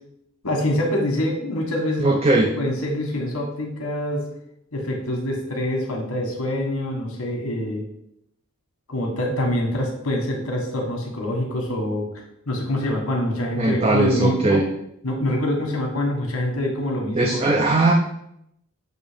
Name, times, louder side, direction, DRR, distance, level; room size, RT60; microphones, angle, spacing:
voice 1, 0.4-4.2 4.7-7.8 8.9-12.0 12.5-14.6 15.0-17.6, left 1 dB, 85° left, 0 dB, 1.5 m, -25 dB
voice 2, 2.0-2.5 13.5-14.7 17.2-17.9, right 2 dB, 30° right, 1 dB, 0.5 m, -19 dB
7.2 x 2.9 x 5.1 m, 0.78 s
head